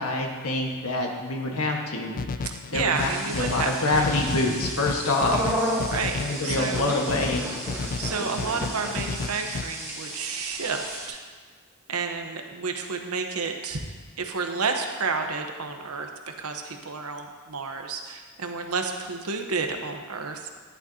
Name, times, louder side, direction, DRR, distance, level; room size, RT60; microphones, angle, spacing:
voice 1, 0.0-2.2 2.7-5.4 6.2-7.4, left 2 dB, 75° left, 1 dB, 1.5 m, -26 dB
sound 1, 2.2-9.6, left 4 dB, 40° left, 0.3 m, -33 dB
voice 2, 2.4-4.1 5.9-6.9 8.0-11.2 11.9-13.8 14.2-20.5, right 4 dB, 85° right, 4 dB, 1.0 m, -31 dB
sound 2, 2.9-11.1, equal, 15° right, 2.4 m, -33 dB
11.0 x 11.0 x 2.8 m, 1.5 s
head